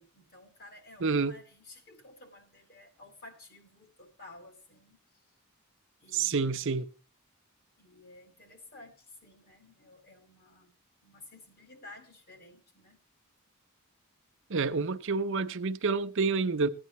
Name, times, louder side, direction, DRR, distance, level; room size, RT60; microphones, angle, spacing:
voice 1, 0.0-5.0 6.0-6.6 7.8-10.7 11.0-13.0, left 2 dB, 45° left, 2.3 m, -53 dB
voice 2, 1.0-1.3 6.1-6.9 14.5-16.7, right 4 dB, 60° right, 0.7 m, -28 dB
15.5 x 9.5 x 3.1 m
head